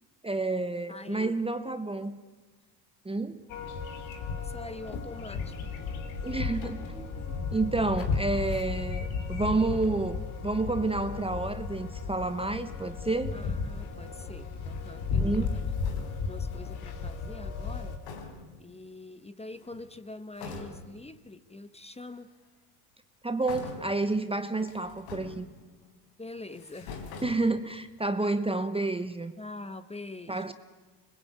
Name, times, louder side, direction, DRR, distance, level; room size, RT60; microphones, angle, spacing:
voice 1, 0.2-2.2 3.0-3.4 6.2-13.4 15.2-15.5 23.2-25.5 27.2-29.3 30.3-30.5, right 2 dB, 10° right, 10 dB, 1.1 m, -30 dB
voice 2, 0.9-1.4 4.4-5.7 13.3-15.7 16.3-18.0 18.6-22.3 24.6-24.7 26.2-27.0 29.4-30.5, left 2 dB, 10° left, 12 dB, 1.3 m, -44 dB
sound 1, 3.5-18.0, left 5 dB, 70° left, 3.4 m, -34 dB
sound 2, 13.3-14.5 14.9-16.3 17.7-17.8 18.0-18.7 19.5-20.0 20.3-21.1 22.0-22.1 23.4-24.1 24.6-25.9 26.4-27.9, left 4 dB, 85° left, 4.1 m, -45 dB
25.5 x 21.0 x 8.9 m, 1.3 s
supercardioid pair, 90°, 49 cm